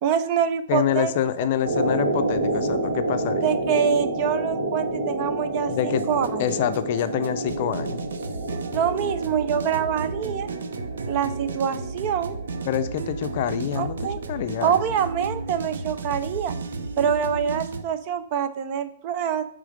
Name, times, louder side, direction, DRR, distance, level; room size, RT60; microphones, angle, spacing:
voice 1, 0.0-1.1 3.4-6.4 8.7-10.5 11.1-12.4 13.8-14.2 14.6-16.5 17.0-19.4, right 8 dB, 35° right, 11 dB, 0.5 m, -25 dB
voice 2, 0.7-3.4 5.7-8.0 12.7-14.8, left 10 dB, 45° left, 10 dB, 0.5 m, -26 dB
sound 1, 1.6-16.9 17.2-17.3, right 2 dB, 65° right, 1.9 m, -30 dB
sound 2, 6.0-17.8, right 3 dB, 80° right, 0.7 m, -33 dB
8.3 x 3.7 x 5.0 m, 0.63 s
hypercardioid pair, 160°, 0 cm